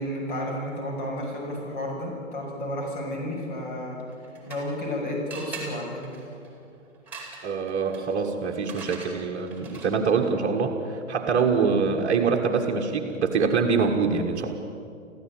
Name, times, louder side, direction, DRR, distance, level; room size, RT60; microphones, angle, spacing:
voice 1, 0.0-4.0 4.5-6.1, left 1 dB, 40° left, -1 dB, 7.1 m, -32 dB
sound 1, 4.0-4.9 5.3-10.1, right 4 dB, 5° right, 4.5 m, -43 dB
voice 2, 7.4-14.6, right 5 dB, 20° right, -1 dB, 1.7 m, -24 dB
24.5 x 15.5 x 9.1 m, 2.5 s
figure-of-eight pair, 125°, 38 cm